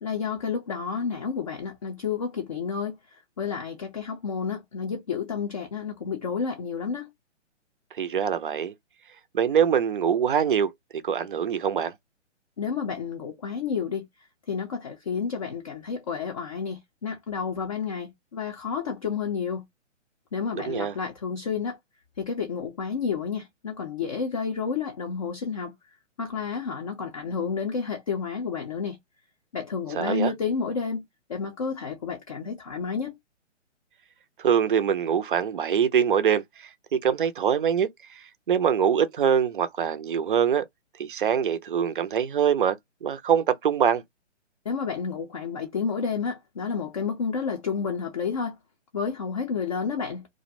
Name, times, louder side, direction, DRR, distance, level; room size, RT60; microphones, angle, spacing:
voice 1, 0.0-3.0 3.4-7.1 12.6-14.1 14.5-19.6 20.3-21.8 22.2-25.7 26.2-29.0 29.5-31.0 31.3-33.2 44.7-48.5 48.9-50.3, left 6 dB, 30° left, 0.4 m, -30 dB
voice 2, 8.0-8.7 9.3-10.7 11.0-11.9 20.6-20.9 29.9-30.3 34.4-40.7 41.0-44.0, right 8 dB, 45° right, 0.4 m, -24 dB
2.4 x 2.1 x 2.5 m
figure-of-eight pair, 135°, 37 cm